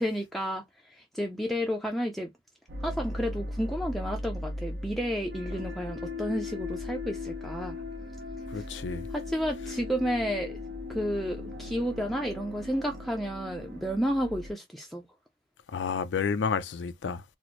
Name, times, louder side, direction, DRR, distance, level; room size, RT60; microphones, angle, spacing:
voice 1, 0.0-2.3 2.8-7.8 8.6-8.7 9.1-10.6 10.9-15.0, equal, ahead, 0.4 m, -31 dB
sound 1, 2.7-14.5, left 2 dB, 70° right, 0.8 m, -38 dB
voice 2, 8.5-9.1 15.7-17.2, left 5 dB, 85° left, 0.4 m, -30 dB
4.1 x 2.0 x 3.0 m
head